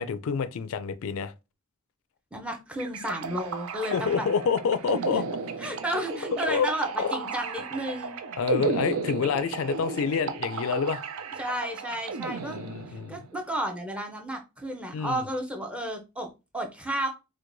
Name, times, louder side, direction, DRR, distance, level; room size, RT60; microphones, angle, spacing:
voice 1, 0.0-1.3 3.8-5.2 6.5-6.7 7.0-7.2 8.4-11.0 12.4-13.2 14.9-15.2, left 6 dB, 65° left, 0.3 m, -28 dB
voice 2, 2.3-4.3 5.1-5.2 5.6-8.2 11.4-12.6 13.1-17.1, right 1 dB, 5° right, 0.6 m, -32 dB
sound 1, 2.8-13.2, right 5 dB, 70° right, 0.5 m, -34 dB
4.5 x 2.2 x 2.6 m
head